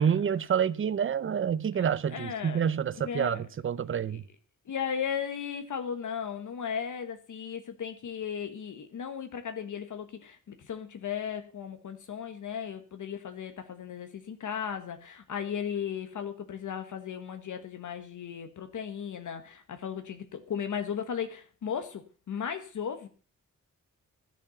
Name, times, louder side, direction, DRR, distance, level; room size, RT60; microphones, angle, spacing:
voice 1, 0.0-4.2, right 8 dB, 40° right, 0.6 m, -28 dB
voice 2, 1.7-2.6 2.9-3.4 4.1-4.2 4.7-23.1, left 7 dB, 75° left, 1.4 m, -36 dB
13.5 x 7.1 x 7.0 m
wide cardioid pair, 175°, 31 cm